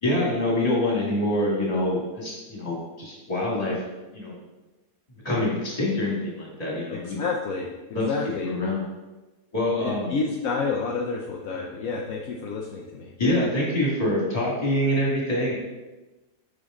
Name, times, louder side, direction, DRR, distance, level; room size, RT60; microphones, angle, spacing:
voice 1, 0.0-3.8 4.1-4.4 5.2-7.2 7.9-8.1 8.4-8.8 9.5-10.1 13.2-15.5, left 1 dB, 20° left, -4 dB, 1.9 m, -25 dB
voice 2, 6.9-7.7 8.0-8.6 9.6-13.1, left 4 dB, 65° left, -1 dB, 0.8 m, -29 dB
6.8 x 5.2 x 3.7 m, 1.1 s
omnidirectional pair, 2.0 m